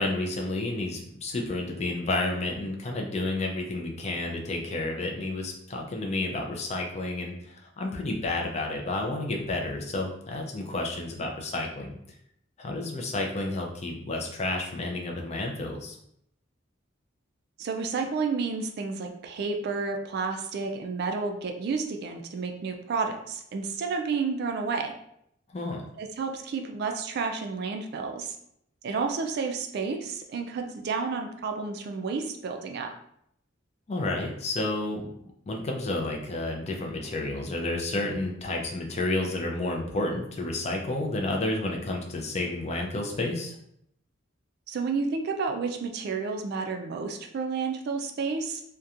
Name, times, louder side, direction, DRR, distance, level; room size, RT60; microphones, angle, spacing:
voice 1, 0.0-12.0 12.6-16.0 25.5-25.9 33.9-35.0 35.5-43.6, left 2 dB, 30° left, 1 dB, 0.4 m, -31 dB
voice 2, 17.6-24.9 26.0-28.4 28.8-32.9 44.7-48.6, right 4 dB, 50° right, 4 dB, 0.3 m, -31 dB
2.8 x 2.2 x 2.4 m, 0.73 s
head